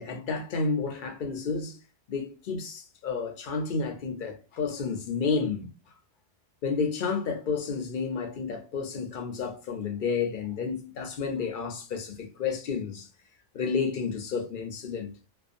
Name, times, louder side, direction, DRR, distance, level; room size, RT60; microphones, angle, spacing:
voice 1, 0.0-1.8 2.1-5.7 6.6-13.1 13.5-15.1, left 5 dB, 60° left, 0.6 m, -31 dB
2.6 x 2.3 x 2.5 m
omnidirectional pair, 1.1 m